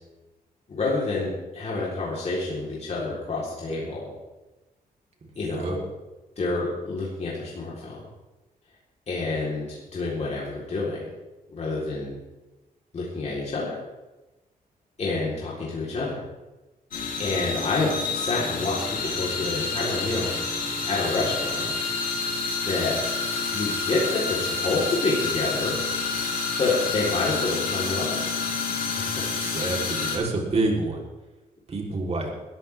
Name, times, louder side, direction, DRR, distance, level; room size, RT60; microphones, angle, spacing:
voice 1, 0.7-4.1 5.4-5.8 6.4-8.0 9.1-11.0 11.5-12.1 12.9-13.8 15.0-16.2 17.2-20.6 20.9-21.7 22.7-23.0 23.4-25.7 26.6-28.2 29.0-29.2 29.5-29.6, left 3 dB, 45° left, -6 dB, 4.0 m, -28 dB
sound 1, 16.9-30.2, left 4 dB, 65° left, 4.2 m, -28 dB
voice 2, 29.4-31.0 31.7-32.3, right 2 dB, 45° right, 0 dB, 3.7 m, -27 dB
21.5 x 13.5 x 3.6 m, 1.1 s
wide cardioid pair, 130°, 16 cm